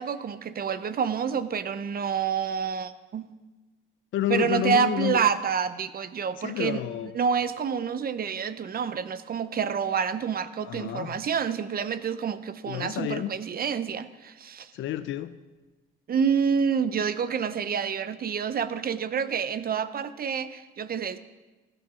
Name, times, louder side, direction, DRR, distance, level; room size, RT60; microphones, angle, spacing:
voice 1, 0.0-3.3 4.3-6.8 7.1-14.7 16.1-21.2, right 7 dB, 50° right, 13 dB, 0.8 m, -28 dB
voice 2, 4.1-5.2 6.4-7.1 10.6-11.2 12.7-13.4 14.7-15.4, left 12 dB, 75° left, 12 dB, 0.6 m, -30 dB
15.5 x 9.0 x 6.2 m, 1.2 s
cardioid pair, 90°, 20 cm